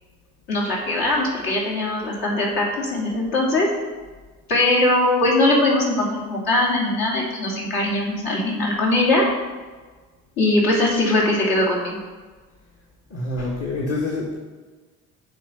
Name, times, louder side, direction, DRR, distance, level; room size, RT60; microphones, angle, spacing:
voice 1, 0.5-3.7 4.5-9.2 10.4-12.0, left 2 dB, 55° left, -3 dB, 2.6 m, -21 dB
voice 2, 13.1-14.4, left 2 dB, 35° left, -3 dB, 1.7 m, -26 dB
6.9 x 5.1 x 5.7 m, 1.3 s
figure-of-eight pair, 55°, 43 cm